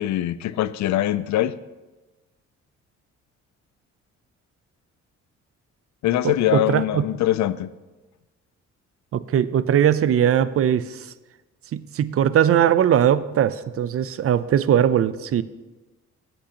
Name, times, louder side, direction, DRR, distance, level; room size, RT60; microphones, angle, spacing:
voice 1, 0.0-1.5 6.0-7.7, left 13 dB, 70° left, 16 dB, 0.5 m, -23 dB
voice 2, 6.2-7.0 9.1-11.1 11.7-15.4, right 9 dB, 50° right, 16 dB, 0.5 m, -20 dB
17.0 x 8.1 x 2.9 m, 1.2 s
cardioid pair, 90°, 30 cm